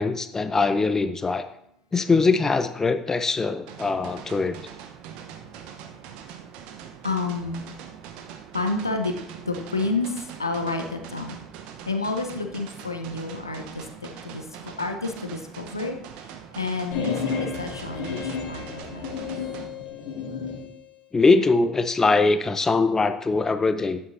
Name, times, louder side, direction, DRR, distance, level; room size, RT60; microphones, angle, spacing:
voice 1, 0.0-1.4 1.9-4.6 21.1-24.0, left 3 dB, 25° left, 11 dB, 0.6 m, -22 dB
sound 1, 3.7-19.7, right 8 dB, 60° right, 0.9 m, -42 dB
voice 2, 7.0-7.6 8.5-9.2 9.5-11.4 11.8-19.3, left 3 dB, 90° left, 5 dB, 0.8 m, -30 dB
sound 2, 16.9-20.7, left 5 dB, 65° left, 2.1 m, -31 dB
11.0 x 9.0 x 2.7 m, 0.75 s
figure-of-eight pair, 60°, 2 cm